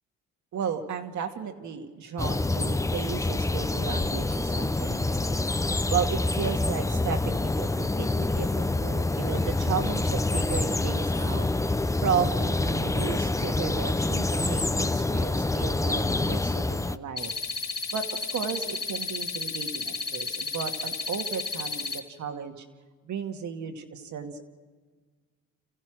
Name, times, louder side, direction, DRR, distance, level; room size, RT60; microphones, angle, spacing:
voice 1, 0.5-5.3 5.9-11.5 12.0-17.3 17.9-18.1 18.3-22.6 23.0-24.4, right 7 dB, 70° right, 5 dB, 2.2 m, -34 dB
sound 1, 2.2-17.0, left 2 dB, 10° left, 0.7 m, -27 dB
sound 2, 17.2-22.0, left 3 dB, 50° left, 3.9 m, -33 dB
29.5 x 15.5 x 6.3 m, 1.5 s
cardioid pair, 90°, 30 cm